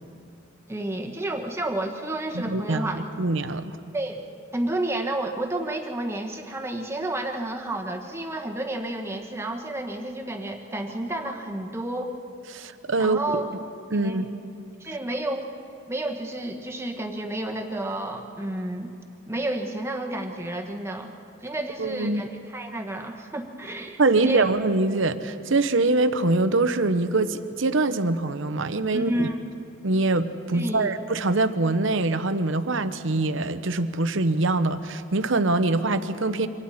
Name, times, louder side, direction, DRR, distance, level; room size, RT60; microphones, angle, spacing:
voice 1, 0.7-3.0 3.9-4.2 4.5-12.1 13.0-13.5 14.0-14.3 14.8-15.5 15.9-18.9 19.3-21.1 21.4-24.4 28.9-29.4 30.5-30.9, right 1 dB, 10° right, 3 dB, 1.2 m, -30 dB
voice 2, 2.3-2.9 3.2-3.7 12.5-13.2 13.9-14.3 21.8-22.2 24.0-29.3 29.8-36.5, right 2 dB, 65° right, 11 dB, 0.9 m, -24 dB
27.5 x 24.5 x 4.3 m, 2.7 s
head